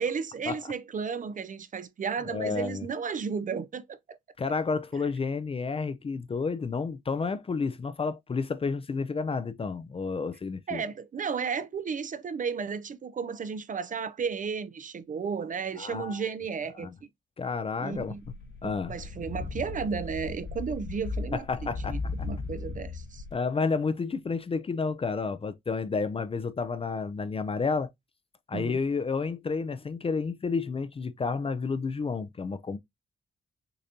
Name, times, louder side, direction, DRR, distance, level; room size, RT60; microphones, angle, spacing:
voice 1, 0.0-4.2 10.7-16.9 17.8-18.2 18.6-21.5 21.9-23.2 28.5-28.8, right 6 dB, 40° right, 0.5 m, -33 dB
voice 2, 2.3-2.9 4.4-10.8 15.8-16.2 16.8-16.9 17.4-18.1 18.6-18.9 21.3-22.3 23.3-27.9 28.5-32.8, left 4 dB, 30° left, 0.4 m, -30 dB
sound 1, 17.9-23.3, left 4 dB, 70° left, 2.7 m, -37 dB
6.6 x 2.6 x 2.8 m
cardioid pair, 115°, 21 cm